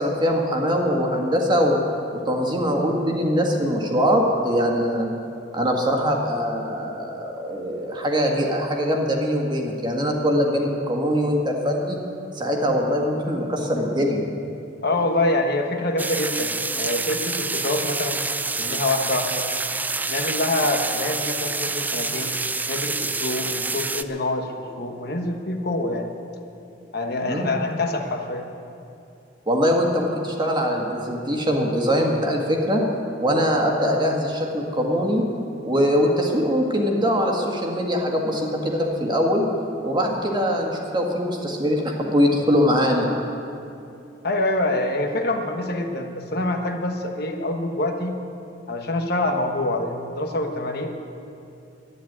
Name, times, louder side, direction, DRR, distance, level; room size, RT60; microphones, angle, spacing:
voice 1, 0.0-1.8 2.3-5.1 5.5-12.0 12.4-14.3 27.3-27.5 29.5-32.8 33.2-35.3 35.6-39.5 39.8-43.1, equal, 25° right, 0 dB, 1.8 m, -22 dB
voice 2, 14.8-16.5 16.8-18.2 18.6-19.5 20.1-22.4 22.7-26.1 26.9-28.5 44.2-48.2 48.7-50.9, left 2 dB, 60° left, 3 dB, 1.2 m, -25 dB
sound 1, 16.0-24.0, right 3 dB, 10° right, 0.3 m, -27 dB
12.0 x 9.8 x 9.4 m, 2.8 s
head